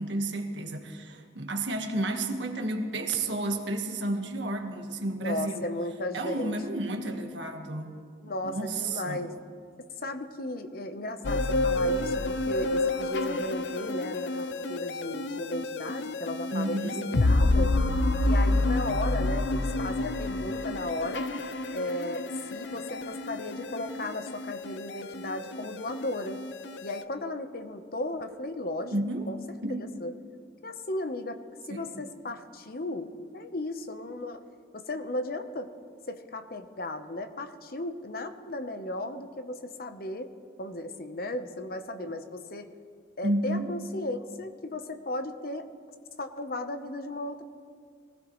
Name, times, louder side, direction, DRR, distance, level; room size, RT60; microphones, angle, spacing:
voice 1, 0.0-5.6 6.1-7.9 8.4-9.2 16.5-17.1 28.9-29.3 29.6-29.8 31.7-32.0 43.2-43.7, right 2 dB, 80° right, 4 dB, 1.6 m, -31 dB
voice 2, 5.2-6.6 6.8-7.2 8.2-9.4 9.9-17.7 18.2-21.3 21.7-26.4 26.8-29.0 29.3-29.6 30.0-30.1 30.6-34.4 34.7-35.7 36.1-40.3 40.6-42.7 43.2-45.7 46.2-47.4, left 1 dB, 55° left, 8 dB, 0.9 m, -35 dB
sound 1, 11.2-27.0, left 2 dB, 75° left, 0.6 m, -29 dB
23.0 x 16.0 x 3.2 m, 2.2 s
head